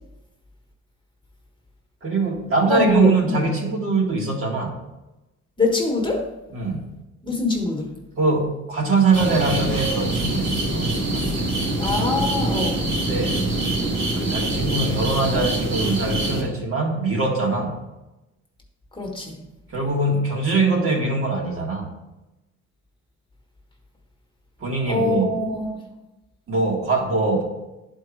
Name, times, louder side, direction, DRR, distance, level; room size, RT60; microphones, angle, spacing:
voice 1, 2.0-4.8 6.5-6.9 8.2-11.8 13.1-13.4 14.2-17.8 19.7-21.9 24.6-25.3 26.5-27.4, right 3 dB, 45° right, -1 dB, 1.7 m, -23 dB
voice 2, 2.6-3.4 5.6-6.3 7.2-7.9 11.8-12.8 18.9-19.4 24.9-25.7, left 3 dB, 15° left, 0 dB, 1.4 m, -23 dB
sound 1, 9.1-16.4, right 1 dB, 65° right, 2.3 m, -24 dB
10.5 x 4.5 x 3.2 m, 1.0 s
cardioid pair, 90°, 30 cm